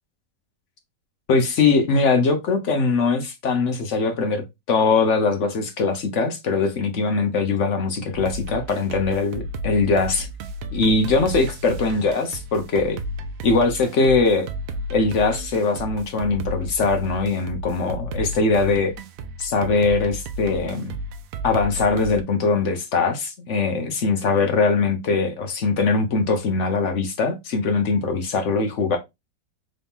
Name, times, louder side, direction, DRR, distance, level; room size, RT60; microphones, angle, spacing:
voice 1, 1.3-10.3 10.7-13.0 13.4-14.5 14.9-18.9 19.4-20.9 21.4-29.0, left 4 dB, 55° left, 0.8 m, -21 dB
sound 1, 8.1-22.2, equal, 75° right, 0.8 m, -33 dB
3.9 x 2.8 x 3.5 m
omnidirectional pair, 2.0 m